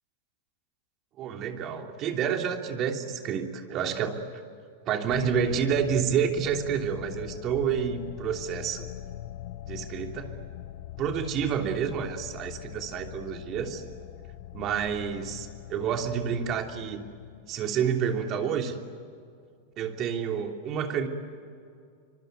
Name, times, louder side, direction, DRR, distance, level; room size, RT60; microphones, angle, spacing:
voice 1, 1.2-4.2 4.9-8.9 9.7-10.4 11.0-13.8 14.5-17.1 17.5-18.8 19.8-21.1, right 7 dB, 40° right, 4 dB, 3.1 m, -29 dB
sound 1, 5.1-18.4, left 12 dB, 65° left, 1.0 m, -42 dB
25.0 x 24.5 x 9.3 m, 2.3 s
hypercardioid pair, 115°, 0 cm